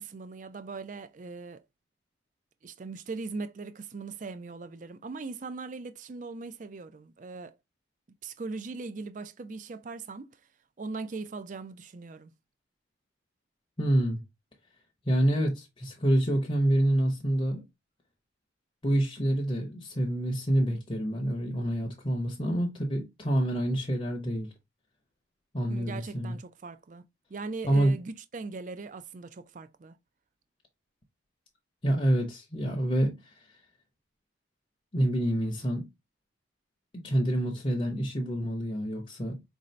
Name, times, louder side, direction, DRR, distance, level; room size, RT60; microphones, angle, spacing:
voice 1, 0.0-1.6 2.6-7.6 8.2-10.3 10.8-12.3 25.7-27.0 27.3-30.0, right 3 dB, 40° right, 0.4 m, -40 dB
voice 2, 13.8-14.2 15.1-17.6 18.8-24.5 25.5-26.4 27.6-28.0 31.8-33.6 34.9-35.9 36.9-39.4, right 1 dB, 25° left, 0.7 m, -27 dB
4.8 x 2.7 x 3.1 m
head